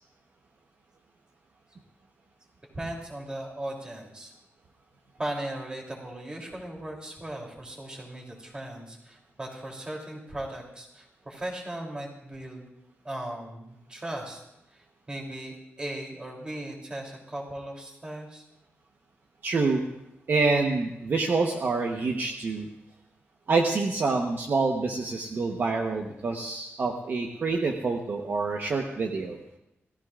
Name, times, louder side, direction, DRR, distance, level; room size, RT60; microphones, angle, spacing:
voice 1, 2.7-4.3 5.2-12.7 13.0-14.4 14.7-18.5, right 1 dB, 20° right, -1 dB, 3.2 m, -37 dB
voice 2, 19.4-19.9 20.3-22.7 23.5-29.4, right 3 dB, 45° right, 2 dB, 1.0 m, -27 dB
27.5 x 17.0 x 2.5 m, 0.88 s
wide cardioid pair, 175°, 5 cm